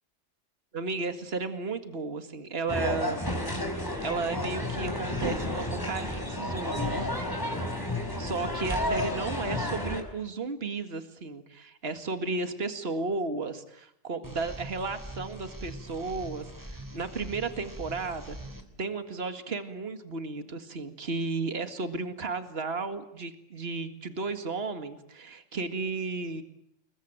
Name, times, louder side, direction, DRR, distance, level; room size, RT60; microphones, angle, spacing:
voice 1, 0.7-3.2 4.0-7.5 8.2-18.4 18.8-26.4, right 3 dB, 50° right, 8 dB, 2.3 m, -34 dB
sound 1, 2.7-10.0, left 1 dB, 15° left, 5.1 m, -31 dB
sound 2, 14.2-18.6, right 1 dB, 15° right, 3.6 m, -43 dB
30.0 x 22.0 x 9.0 m, 0.78 s
omnidirectional pair, 1.3 m